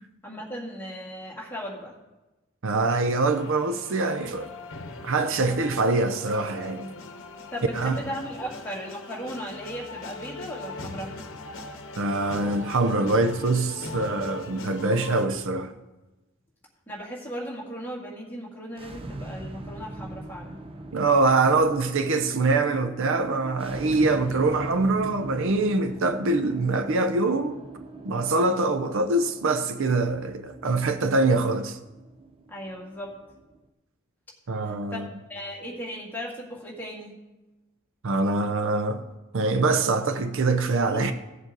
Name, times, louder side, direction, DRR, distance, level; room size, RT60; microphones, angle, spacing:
voice 1, 0.2-1.9 7.5-11.1 16.9-20.6 32.5-33.1 34.6-37.1 40.9-41.0, equal, 10° left, 2.1 m, -37 dB
voice 2, 2.6-4.5 5.0-6.9 7.7-8.0 12.0-15.7 20.9-27.6 28.0-31.8 34.5-35.1 38.0-39.0 39.3-41.1, right 3 dB, 65° right, 0.6 m, -24 dB
sound 1, 3.3-15.3, left 2 dB, 65° left, 1.0 m, -40 dB
sound 2, 18.7-33.7, right 2 dB, 25° right, 0.6 m, -41 dB
16.0 x 7.3 x 3.9 m
head